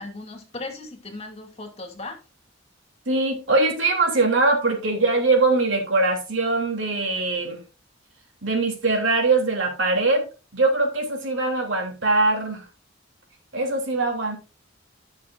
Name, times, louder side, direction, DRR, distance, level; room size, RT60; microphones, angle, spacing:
voice 1, 0.0-2.2, left 2 dB, 30° left, 3 dB, 2.5 m, -37 dB
voice 2, 3.0-7.6 8.4-10.2 10.5-12.7 13.5-14.4, right 3 dB, 70° right, 1 dB, 3.3 m, -22 dB
16.0 x 6.4 x 2.6 m, 0.32 s
head